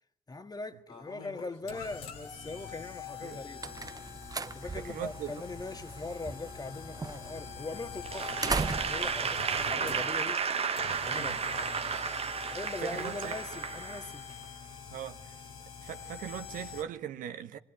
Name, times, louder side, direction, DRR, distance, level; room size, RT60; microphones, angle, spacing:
voice 1, 0.3-3.7 4.5-10.5 11.0-11.4 12.5-14.3, left 3 dB, 30° left, 1.8 m, -41 dB
sound 1, 0.9-16.8, left 7 dB, 85° left, 2.8 m, -45 dB
sound 2, 3.1-10.6, right 4 dB, 25° right, 0.8 m, -39 dB
voice 2, 4.8-5.4 8.4-8.7 11.1-11.4 12.5-13.3 14.9-15.3 15.8-17.6, right 10 dB, 75° right, 1.3 m, -40 dB
Applause / Crowd, 8.0-14.4, right 6 dB, 45° right, 1.1 m, -33 dB
24.0 x 20.5 x 8.8 m
supercardioid pair, 50°, 14 cm